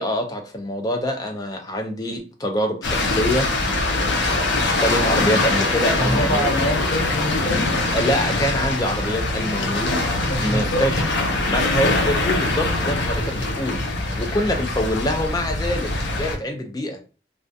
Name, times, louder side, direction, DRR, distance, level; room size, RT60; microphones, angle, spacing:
voice 1, 0.0-3.7 4.6-6.7 7.9-10.0 10.4-11.0 11.5-13.8 14.2-17.0, equal, 20° left, 4 dB, 0.4 m, -25 dB
sound 1, 2.8-16.4, left 2 dB, 80° left, 0.6 m, -23 dB
voice 2, 5.9-7.7 10.3-10.9, equal, 60° left, -1 dB, 1.2 m, -25 dB
sound 2, 6.3-13.1, right 1 dB, 30° right, 0.8 m, -34 dB
2.3 x 2.2 x 2.6 m, 0.35 s
head